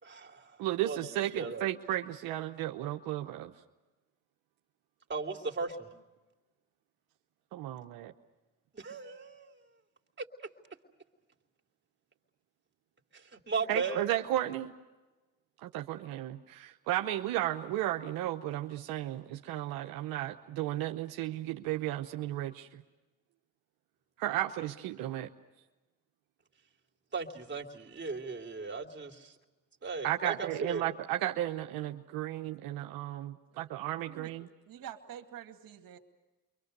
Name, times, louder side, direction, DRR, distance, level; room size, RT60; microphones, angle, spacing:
voice 1, 0.0-0.5 0.8-1.0 1.4-1.7 5.1-5.9 8.7-9.5 13.3-14.0 27.1-29.3 29.8-30.9, right 4 dB, 30° right, 3 dB, 3.0 m, -36 dB
voice 2, 0.6-3.5 7.5-8.1 13.7-14.7 15.6-22.8 24.2-25.3 30.0-34.5, right 14 dB, 90° right, 4 dB, 0.9 m, -34 dB
voice 3, 34.7-36.0, right 10 dB, 70° right, 4 dB, 2.2 m, -47 dB
29.0 x 24.5 x 6.7 m, 1.2 s
supercardioid pair, 65°, 34 cm